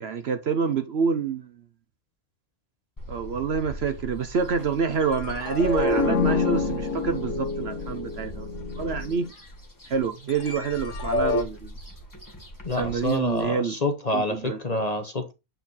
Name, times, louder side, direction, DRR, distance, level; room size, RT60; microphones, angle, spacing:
voice 1, 0.0-1.5 3.1-8.5 8.8-9.3 9.9-11.7 12.8-13.8 14.1-14.6, right 5 dB, 55° right, 0.9 m, -27 dB
sound 1, 3.0-13.5, equal, 15° left, 1.6 m, -40 dB
sound 2, 5.0-9.3 10.3-11.4, left 3 dB, 65° left, 1.3 m, -27 dB
voice 2, 12.6-15.3, left 2 dB, 35° left, 0.8 m, -27 dB
7.9 x 4.3 x 3.9 m
omnidirectional pair, 1.5 m